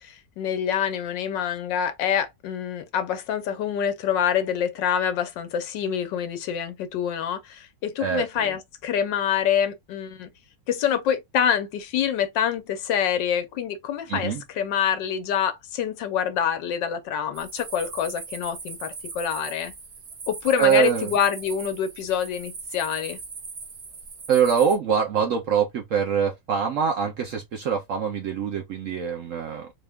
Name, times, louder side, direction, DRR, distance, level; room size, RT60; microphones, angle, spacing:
voice 1, 0.0-10.3 10.7-19.7 20.3-23.2, left 8 dB, 85° left, 1.4 m, -26 dB
voice 2, 8.0-8.6 14.1-14.4 20.6-21.1 24.3-29.7, right 7 dB, 70° right, 0.7 m, -24 dB
sound 1, 17.3-24.8, right 4 dB, 45° right, 1.2 m, -39 dB
4.1 x 2.3 x 3.5 m
omnidirectional pair, 1.9 m